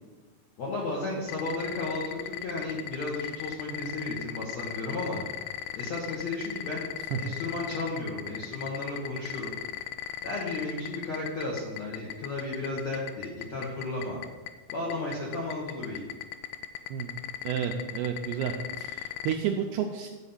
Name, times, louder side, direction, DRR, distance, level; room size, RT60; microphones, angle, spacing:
voice 1, 0.6-5.2 5.7-6.9 7.2-9.5 10.2-14.2 14.7-16.0, left 2 dB, 65° left, -4 dB, 1.7 m, -34 dB
sound 1, 1.3-19.4, left 12 dB, 85° left, 2.4 m, -36 dB
voice 2, 17.4-20.1, right 8 dB, 80° right, 2 dB, 2.4 m, -31 dB
12.5 x 4.2 x 7.2 m, 1.3 s
omnidirectional pair, 5.4 m